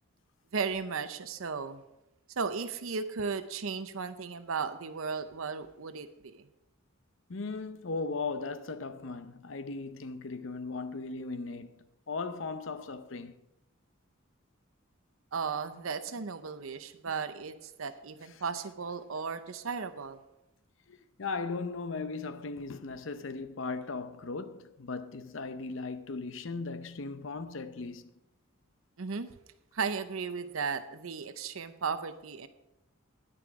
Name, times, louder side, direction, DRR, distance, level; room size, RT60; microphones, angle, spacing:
voice 1, 0.5-1.8 2.4-6.4 15.3-20.2 29.0-29.3 29.7-32.5, right 5 dB, 75° right, 0.7 m, -35 dB
voice 2, 7.3-11.7 12.1-13.3 20.9-28.1, left 4 dB, 65° left, 0.7 m, -37 dB
10.0 x 9.8 x 4.8 m
head